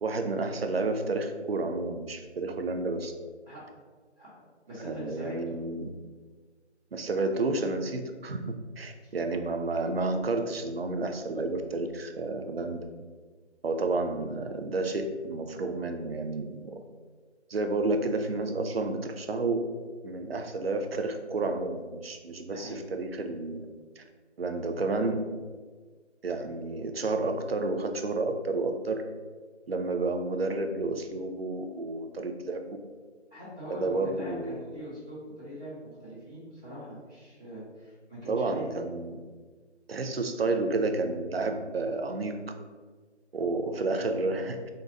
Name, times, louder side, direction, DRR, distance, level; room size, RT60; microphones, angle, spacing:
voice 1, 0.0-3.1 4.8-5.9 6.9-12.9 13.6-16.7 17.5-19.7 20.0-23.7 24.0-24.1 24.4-25.3 26.2-29.0 29.7-32.6 33.7-34.6 38.3-39.2 39.9-42.3 43.3-44.7, right 3 dB, 60° right, 6 dB, 0.5 m, -30 dB
voice 2, 4.7-5.5 9.0-9.2 22.5-22.7 33.3-38.6, equal, 5° left, -23 dB, 0.8 m, -42 dB
3.9 x 2.2 x 3.8 m, 1.4 s
figure-of-eight pair, 160°, 35 cm